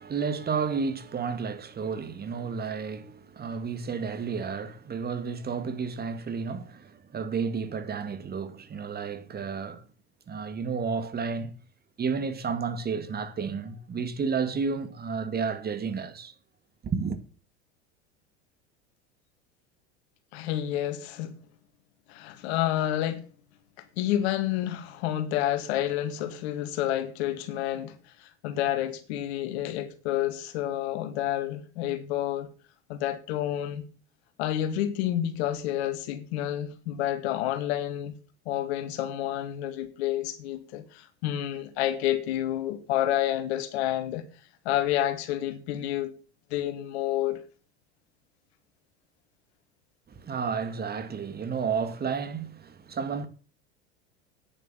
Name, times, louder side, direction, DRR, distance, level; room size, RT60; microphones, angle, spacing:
voice 1, 0.0-9.8 10.3-11.5 12.0-16.3 16.8-17.2 50.1-53.3, right 5 dB, 25° right, 1.9 m, -31 dB
voice 2, 20.3-21.3 22.1-23.3 23.8-32.5 32.9-33.8 34.4-38.1 38.5-44.3 44.7-46.1 46.5-47.4, left 12 dB, 65° left, 2.1 m, -29 dB
9.9 x 9.3 x 7.1 m
hypercardioid pair, 85°, 34 cm